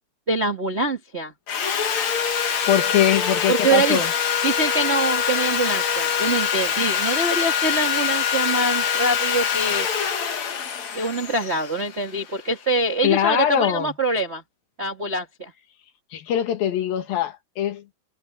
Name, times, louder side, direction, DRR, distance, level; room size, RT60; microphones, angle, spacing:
voice 1, 0.3-1.3 3.5-4.0 4.4-9.9 10.9-14.4 14.8-15.5, right 2 dB, 45° right, 0.8 m, -24 dB
Sawing, 1.5-12.5, left 7 dB, 50° left, 3.1 m, -24 dB
voice 2, 2.7-4.1 13.0-13.9 16.1-17.9, left 10 dB, 65° left, 3.2 m, -22 dB
omnidirectional pair, 4.8 m